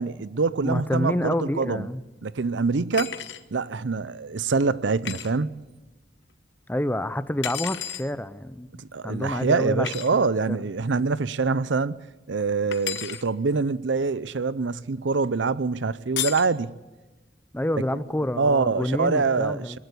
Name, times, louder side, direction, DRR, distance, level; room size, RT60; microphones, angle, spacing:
voice 1, 0.0-1.9 2.2-3.2 3.5-5.5 8.8-12.0 12.3-16.7 18.3-19.8, right 4 dB, 80° right, 0.6 m, -25 dB
voice 2, 0.6-2.0 6.7-8.7 9.0-10.6 17.5-19.8, left 1 dB, 10° left, 0.7 m, -28 dB
sound 1, 2.9-3.4 5.0-5.3 7.4-8.1 9.8-10.1 12.7-13.2 16.2-16.5, left 10 dB, 75° left, 1.0 m, -32 dB
20.5 x 15.0 x 8.3 m
head